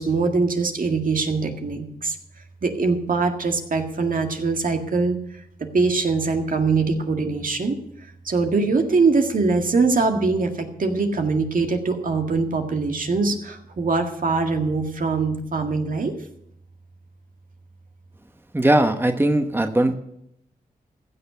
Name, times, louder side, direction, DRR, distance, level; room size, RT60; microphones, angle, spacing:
voice 1, 0.0-2.2 2.6-5.2 5.6-7.8 8.2-16.1, right 4 dB, 60° right, 4 dB, 1.9 m, -22 dB
voice 2, 18.5-19.9, right 1 dB, 15° right, 7 dB, 1.1 m, -19 dB
15.0 x 6.7 x 7.0 m, 0.76 s
cardioid pair, 45°, 16 cm